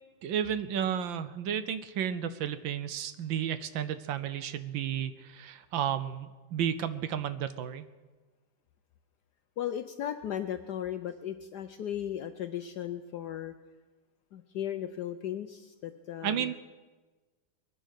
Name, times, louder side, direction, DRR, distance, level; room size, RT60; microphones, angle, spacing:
voice 1, 0.2-7.9 16.2-16.5, right 9 dB, 70° right, 13 dB, 1.3 m, -32 dB
voice 2, 9.6-13.5 14.3-16.5, left 10 dB, 70° left, 10 dB, 1.0 m, -36 dB
21.5 x 10.0 x 6.5 m, 1.3 s
omnidirectional pair, 2.4 m